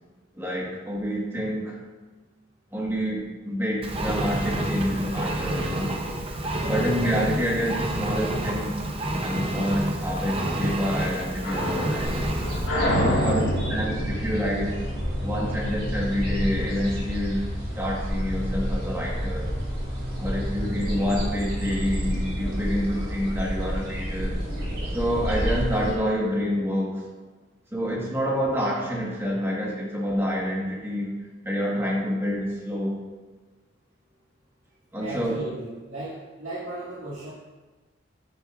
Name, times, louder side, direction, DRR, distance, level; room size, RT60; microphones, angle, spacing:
voice 1, 0.4-1.8 2.7-5.9 6.7-8.8 9.2-12.2 12.9-14.8 15.2-17.4 17.8-19.5 20.2-24.4 24.9-27.0 27.7-31.1 31.4-33.0 34.9-35.3, equal, 10° right, -3 dB, 1.5 m, -27 dB
Engine, 3.8-12.7, right 1 dB, 30° right, 0.7 m, -29 dB
voice 2, 6.6-7.1 13.0-13.5 35.0-37.3, right 2 dB, 85° right, -11 dB, 2.2 m, -35 dB
sound 1, 10.2-15.7, equal, 75° left, 2.0 m, -29 dB
sound 2, 12.0-25.9, equal, 50° right, 2.5 m, -29 dB
10.0 x 8.0 x 2.5 m, 1.3 s
head